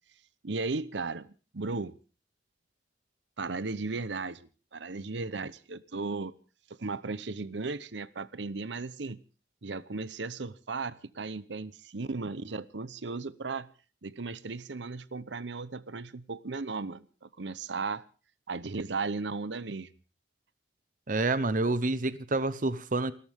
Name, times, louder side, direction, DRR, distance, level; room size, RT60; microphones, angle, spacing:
voice 1, 0.4-1.3 1.5-2.0 3.4-6.3 6.8-9.2 9.6-13.7 14.0-18.0 18.5-19.9, right 3 dB, 85° right, 0.9 m, -36 dB
voice 2, 21.1-23.1, right 2 dB, 50° right, 0.9 m, -28 dB
28.5 x 14.0 x 3.6 m
head